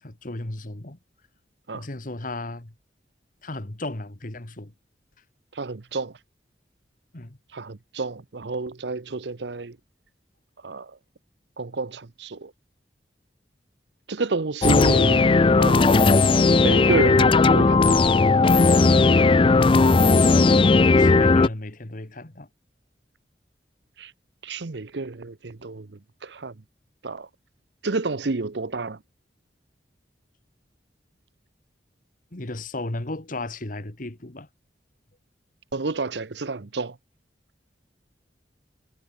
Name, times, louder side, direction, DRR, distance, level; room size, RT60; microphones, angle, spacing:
voice 1, 0.0-1.0 1.7-2.7 3.4-4.7 7.1-7.4 20.9-22.5 32.3-34.5, left 2 dB, 50° left, 1.9 m, -34 dB
voice 2, 5.6-6.1 7.5-9.8 10.6-10.9 11.6-12.5 14.1-16.3 16.6-18.1 24.0-24.1 24.4-25.9 26.2-26.5 27.0-27.3 27.8-29.0 35.7-36.9, right 3 dB, 70° right, 0.8 m, -29 dB
sound 1, 14.6-21.5, left 3 dB, 30° left, 0.4 m, -17 dB
head